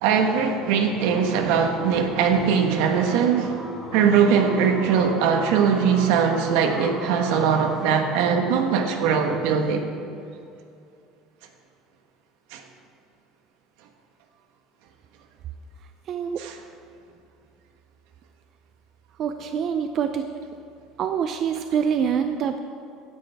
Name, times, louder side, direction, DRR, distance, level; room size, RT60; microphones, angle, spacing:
voice 1, 0.0-3.7 3.9-9.9 12.5-12.6 16.4-16.5, right 6 dB, 80° right, 1.3 m, -21 dB
sound 1, 1.0-7.8, equal, 10° left, 3.0 m, -39 dB
voice 2, 16.1-16.4 19.2-20.3 21.0-22.6, right 7 dB, 40° right, 0.5 m, -25 dB
16.0 x 10.0 x 3.5 m
cardioid pair, 140°, 0 cm